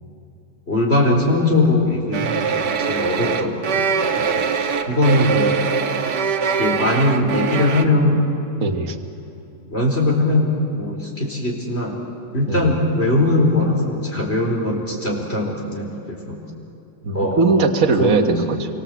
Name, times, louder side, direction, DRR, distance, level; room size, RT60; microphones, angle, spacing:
voice 1, 0.7-3.9 4.1-5.6 6.6-8.3 9.7-12.0 12.3-16.4 17.1-17.6 18.0-18.3, left 2 dB, 35° left, -1 dB, 4.9 m, -20 dB
sound 1, 2.1-7.9, right 6 dB, 90° right, 1.9 m, -22 dB
voice 2, 8.6-9.0 12.5-12.6 17.0-18.7, right 4 dB, 55° right, 4 dB, 1.8 m, -19 dB
28.0 x 24.5 x 8.2 m, 2.9 s
omnidirectional pair, 1.8 m